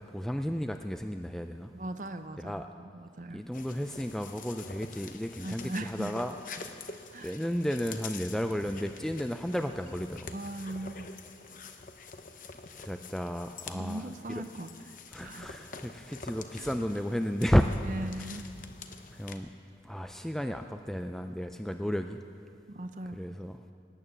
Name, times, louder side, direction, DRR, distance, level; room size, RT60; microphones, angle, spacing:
voice 1, 0.0-1.7 2.4-2.7 3.3-6.3 6.6-6.8 7.2-10.3 12.8-14.4 15.1-17.7 18.2-18.4 19.1-19.5 19.8-22.2 23.1-23.6, equal, 5° left, 6 dB, 0.3 m, -33 dB
voice 2, 1.7-3.4 5.4-6.1 7.1-7.4 10.3-11.1 13.7-14.7 15.2-15.5 16.6-16.7 17.8-18.5 22.7-23.2, right 1 dB, 45° right, 9 dB, 0.7 m, -39 dB
sound 1, 3.5-19.4, left 4 dB, 50° left, 0.8 m, -46 dB
19.0 x 9.0 x 7.2 m, 2.4 s
head